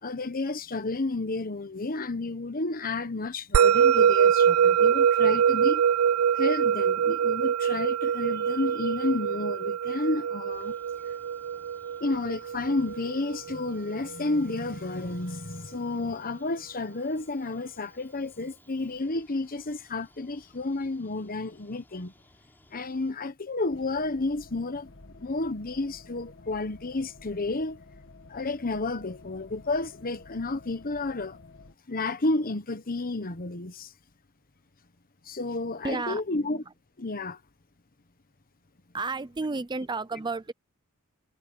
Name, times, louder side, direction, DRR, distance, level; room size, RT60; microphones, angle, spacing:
voice 1, 0.0-5.8 6.3-10.7 12.0-22.1 22.7-24.9 25.2-27.8 28.3-31.4 31.9-33.9 35.2-36.6 37.0-37.4, left 2 dB, 40° left, 1.2 m, -31 dB
Musical instrument, 3.5-14.1, right 7 dB, 75° right, 0.4 m, -24 dB
sound 1, 10.5-23.1, left 1 dB, 10° left, 4.8 m, -61 dB
sound 2, 23.7-31.8, left 3 dB, 60° left, 2.1 m, -51 dB
voice 2, 35.8-36.6 38.9-40.5, right 3 dB, 20° right, 0.5 m, -32 dB
head